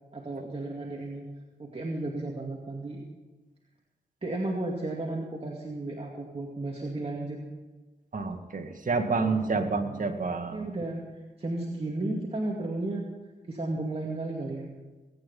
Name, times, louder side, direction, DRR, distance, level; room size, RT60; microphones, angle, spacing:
voice 1, 0.1-1.3 1.6-3.1 4.2-7.4 8.9-10.2 10.5-13.1 13.5-14.7, right 2 dB, 35° right, -1 dB, 2.3 m, -34 dB
voice 2, 8.1-10.7, right 4 dB, 50° right, 5 dB, 2.0 m, -29 dB
19.0 x 9.6 x 5.6 m, 1.2 s
cardioid pair, 55°, 17 cm